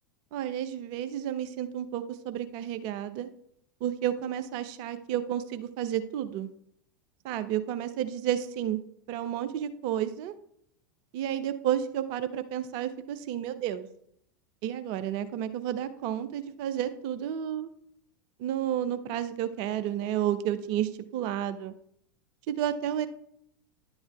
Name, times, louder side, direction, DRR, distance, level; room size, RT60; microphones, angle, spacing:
voice 1, 0.3-3.3 3.8-6.5 7.2-8.8 9.1-10.3 11.1-13.9 14.6-17.7 18.4-21.7 22.5-23.1, right 10 dB, 45° right, 12 dB, 0.5 m, -31 dB
11.0 x 7.8 x 2.3 m, 0.71 s
figure-of-eight pair, 85°, 11 cm